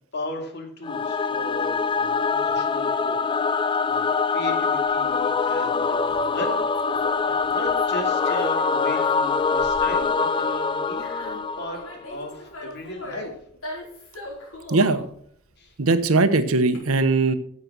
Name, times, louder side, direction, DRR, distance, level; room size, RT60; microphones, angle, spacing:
voice 1, 0.1-3.2 3.6-6.7 7.2-11.8 12.1-13.3 15.6-15.7, left 1 dB, 50° left, 3 dB, 2.7 m, -35 dB
Singing / Musical instrument, 0.8-12.1, left 5 dB, 20° left, 0.3 m, -24 dB
Conversation, 4.8-16.8, left 1 dB, 70° left, 5.1 m, -41 dB
voice 2, 14.7-15.0 15.8-17.3, right 3 dB, 75° right, 11 dB, 1.0 m, -20 dB
11.0 x 7.5 x 6.1 m, 0.64 s
head